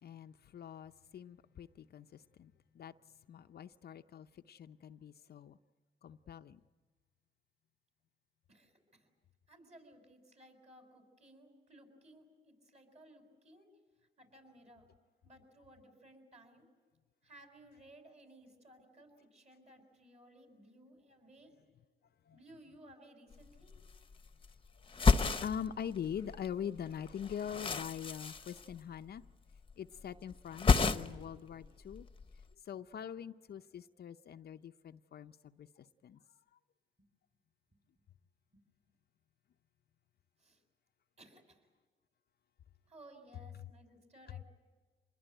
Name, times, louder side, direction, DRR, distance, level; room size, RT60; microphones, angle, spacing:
voice 1, 0.0-2.9 3.3-5.6 6.0-6.6 22.3-22.4 24.8-29.2 29.8-32.1 32.6-36.2, left 8 dB, 55° left, 0.7 m, -44 dB
voice 2, 8.5-9.1 9.5-13.7 14.2-14.8 15.2-16.7 17.2-21.6 22.3-23.7 37.0-37.1 38.5-38.6 40.4-40.6 41.2-41.7 42.9-44.5, right 1 dB, 35° right, 6.9 m, -59 dB
sound 1, 23.3-23.4 23.6-24.5 24.8-26.5 26.8-29.3 29.5-30.1 30.3-31.3 31.6-32.4, left 4 dB, 25° left, 1.0 m, -31 dB
26.0 x 21.0 x 9.1 m
cardioid pair, 90°, 20 cm